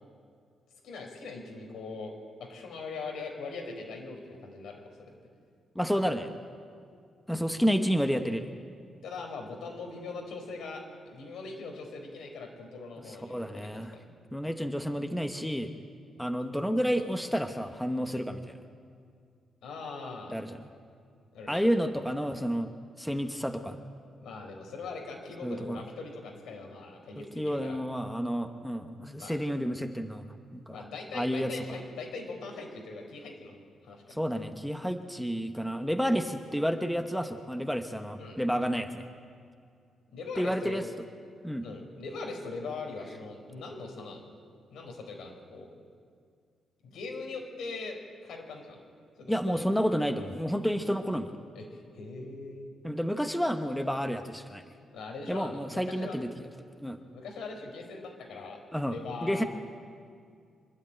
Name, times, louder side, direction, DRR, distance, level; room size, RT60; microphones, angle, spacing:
voice 1, 0.8-2.1 2.4-5.1 9.0-14.0 19.6-20.4 21.3-21.6 24.2-27.8 29.2-29.4 30.7-34.2 38.2-38.4 40.1-40.8 41.6-44.2 44.7-45.7 46.8-48.8 49.2-49.7 51.5-52.7 54.9-56.2 57.1-59.5, left 3 dB, 90° left, 2 dB, 4.7 m, -41 dB
voice 2, 5.7-6.3 7.3-8.5 13.1-13.9 14.3-15.7 16.2-18.6 20.3-20.6 21.5-22.7 23.0-23.8 25.4-25.8 27.2-30.3 30.5-30.8 31.1-31.5 34.1-39.0 40.4-40.8 41.4-41.6 49.3-51.3 52.8-54.6 55.3-56.3 56.8-57.0 58.7-59.4, equal, ahead, 6 dB, 0.9 m, -30 dB
25.5 x 11.5 x 9.0 m, 2.2 s
wide cardioid pair, 160°, 0 cm